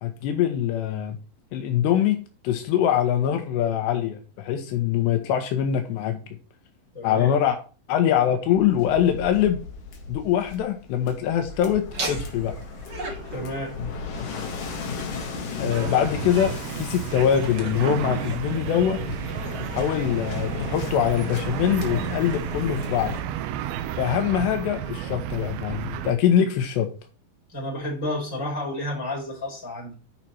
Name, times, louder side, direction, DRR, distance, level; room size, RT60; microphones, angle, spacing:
voice 1, 0.0-1.2 1.5-2.2 2.4-6.2 7.0-7.6 7.9-9.6 10.1-12.5 15.6-19.0 19.7-23.1 24.0-26.9, left 9 dB, 80° left, 6 dB, 3.0 m, -23 dB
voice 2, 6.9-7.4 13.3-13.7 27.5-29.9, left 1 dB, 20° left, -3 dB, 4.2 m, -31 dB
Waves surf, 8.4-23.2, left 4 dB, 55° left, 3.0 m, -36 dB
Laughter, 11.9-19.5, right 2 dB, 40° right, 1.7 m, -38 dB
sound 1, 15.7-26.1, right 11 dB, 80° right, 2.3 m, -32 dB
10.5 x 5.6 x 4.5 m, 0.35 s
omnidirectional pair, 5.0 m